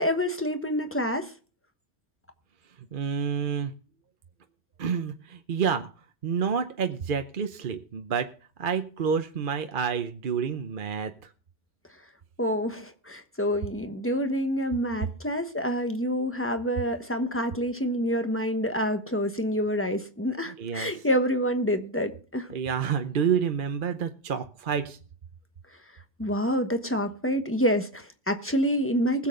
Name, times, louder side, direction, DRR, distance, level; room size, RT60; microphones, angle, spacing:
voice 1, 0.0-1.3 12.4-22.5 26.2-29.3, equal, 10° left, 1.1 m, -27 dB
voice 2, 2.9-3.7 4.8-5.9 6.2-8.3 8.6-11.1 20.6-20.9 22.5-25.0, right 7 dB, 50° right, 0.9 m, -28 dB
20.5 x 7.5 x 3.7 m
omnidirectional pair, 1.2 m